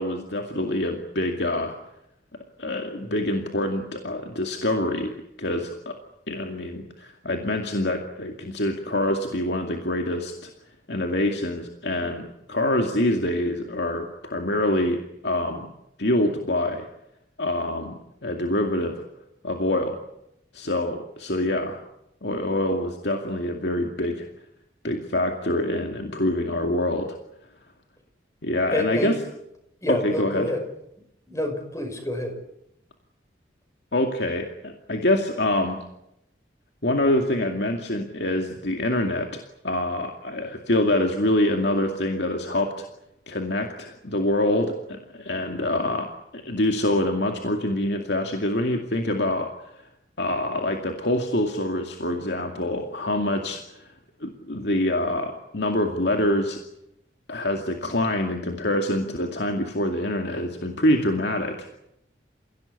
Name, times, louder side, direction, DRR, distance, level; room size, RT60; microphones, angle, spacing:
voice 1, 0.0-1.8 2.6-5.1 5.4-5.9 6.3-10.5 10.9-15.7 16.0-16.9 17.4-19.0 19.4-20.0 20.5-21.8 22.2-24.3 24.8-27.1 28.4-29.2 29.9-30.5 33.9-35.8 36.8-42.9 43.3-49.5 49.8-49.9 50.2-53.9 54.2-56.6 57.3-61.8, left 1 dB, 65° left, 3 dB, 2.3 m, -25 dB
voice 2, 28.7-29.1 29.8-30.6 31.3-32.4, left 1 dB, 15° left, 5 dB, 5.6 m, -28 dB
29.0 x 17.0 x 9.7 m, 0.83 s
head